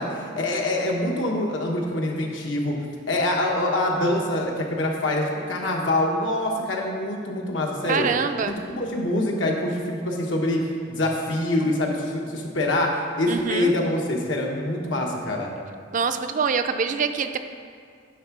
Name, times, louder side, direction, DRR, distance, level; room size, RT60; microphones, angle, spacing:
voice 1, 0.0-2.8 3.1-8.1 8.8-10.6 10.9-15.5, left 1 dB, 90° left, 0 dB, 1.1 m, -25 dB
voice 2, 7.9-8.6 13.3-13.8 15.9-17.4, right 5 dB, 45° right, 9 dB, 0.4 m, -25 dB
9.4 x 3.6 x 6.0 m, 2.2 s
head